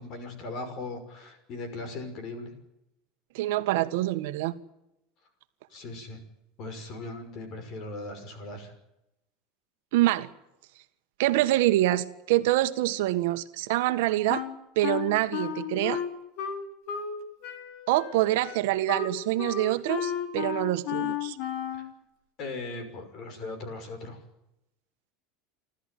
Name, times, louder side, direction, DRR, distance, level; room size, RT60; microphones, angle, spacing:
voice 1, 0.0-2.5 5.7-6.2 6.6-8.7 22.4-24.2, left 2 dB, 40° left, 9 dB, 5.8 m, -38 dB
voice 2, 3.3-4.5 9.9-10.3 11.2-14.4 14.7-16.0 17.9-21.4, right 15 dB, 80° right, 9 dB, 1.5 m, -25 dB
Wind instrument woodwind instrument, 14.3-17.2 17.4-21.9, left 9 dB, 55° left, 3.0 m, -33 dB
28.5 x 13.0 x 9.3 m, 0.86 s
cardioid pair, 160°, 0 cm